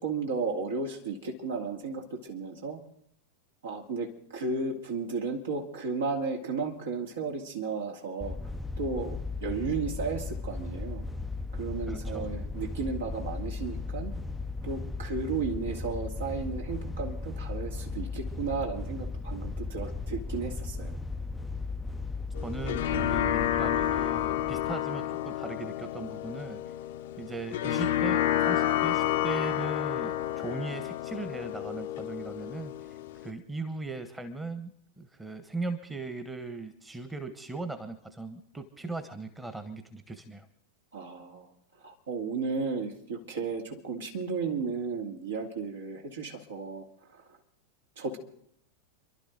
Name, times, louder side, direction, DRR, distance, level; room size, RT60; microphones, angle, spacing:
voice 1, 0.0-2.8 3.6-8.4 8.8-11.0 11.6-14.1 14.6-20.9 40.9-41.5 41.8-46.8 48.0-48.2, right 4 dB, 65° right, 1 dB, 2.5 m, -34 dB
sound 1, 8.2-24.8, left 3 dB, 5° left, 0.6 m, -36 dB
voice 2, 11.9-12.3 22.4-26.6 27.2-32.7 33.1-40.5, right 3 dB, 10° right, 9 dB, 1.3 m, -38 dB
sound 2, 22.4-33.3, left 12 dB, 55° left, 0.7 m, -30 dB
29.5 x 12.0 x 4.0 m, 0.69 s
figure-of-eight pair, 90°, 0 cm